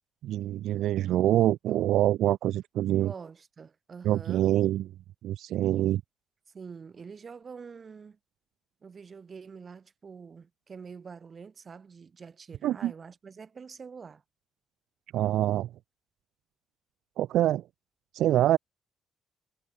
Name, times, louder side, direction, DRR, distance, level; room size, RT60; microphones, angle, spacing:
voice 1, 0.2-3.1 4.0-4.8 5.2-6.0 12.6-12.9 15.1-15.7 17.2-17.6 18.1-18.6, right 13 dB, 80° right, 0.3 m, -25 dB
voice 2, 3.0-4.5 6.5-8.2 8.8-14.2, right 5 dB, 40° right, 4.2 m, -46 dB
cardioid pair, 90°, 0 cm